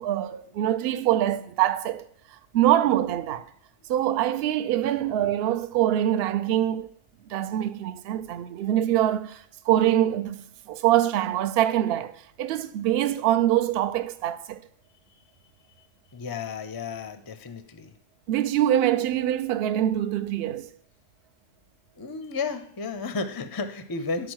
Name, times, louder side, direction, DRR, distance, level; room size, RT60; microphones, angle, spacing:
voice 1, 0.0-2.0 2.5-3.4 3.9-6.9 7.3-14.6 18.3-20.7, right 12 dB, 60° right, 0.7 m, -24 dB
voice 2, 16.1-17.9 22.0-24.3, left 4 dB, 30° left, 0.4 m, -33 dB
11.0 x 4.6 x 6.3 m
omnidirectional pair, 1.3 m